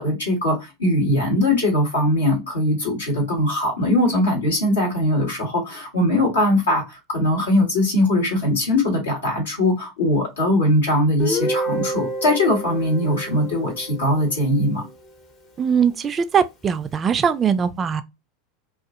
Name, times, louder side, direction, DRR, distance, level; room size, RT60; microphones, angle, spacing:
voice 1, 0.0-14.8, left 1 dB, 75° left, 1.4 m, -21 dB
Guitar, 11.2-15.0, equal, 40° left, 0.9 m, -29 dB
voice 2, 15.6-18.0, right 7 dB, 30° right, 0.3 m, -21 dB
2.5 x 2.3 x 2.5 m
figure-of-eight pair, 80°, 0 cm